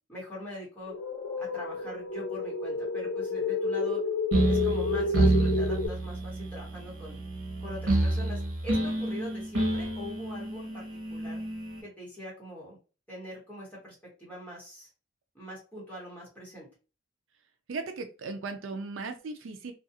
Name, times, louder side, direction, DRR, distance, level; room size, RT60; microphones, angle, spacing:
voice 1, 0.1-1.0 1.4-4.0 4.4-7.2 7.6-11.4 11.8-12.8 13.1-14.9 15.3-16.7, equal, 5° left, -6 dB, 1.2 m, -43 dB
sound 1, 0.9-5.9, left 4 dB, 80° left, 0.6 m, -30 dB
sound 2, 4.3-11.8, right 2 dB, 90° right, 0.9 m, -29 dB
voice 2, 17.7-19.7, right 3 dB, 65° right, 6 dB, 0.4 m, -37 dB
2.4 x 2.3 x 2.7 m, 0.33 s
head